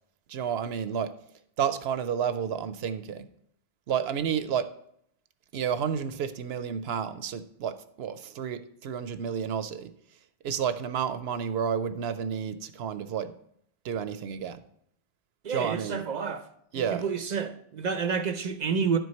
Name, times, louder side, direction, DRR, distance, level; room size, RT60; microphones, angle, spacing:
voice 1, 0.3-1.1 1.6-3.3 3.9-4.7 5.5-9.9 10.4-13.3 13.8-14.6 15.5-16.1 16.7-17.0, right 8 dB, 80° right, 0.8 m, -31 dB
voice 2, 15.4-16.4 16.7-19.0, right 6 dB, 50° right, 0.6 m, -29 dB
11.0 x 4.7 x 4.2 m
omnidirectional pair, 1.1 m